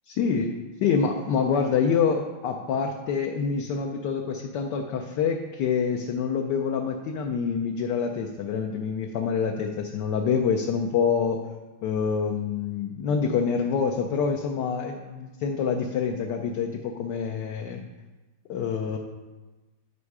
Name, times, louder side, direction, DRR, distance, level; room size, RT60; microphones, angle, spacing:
voice 1, 0.1-11.4 11.8-17.8 18.5-19.0, left 6 dB, 70° left, 2 dB, 1.2 m, -26 dB
11.0 x 5.4 x 4.7 m, 1.2 s
omnidirectional pair, 2.3 m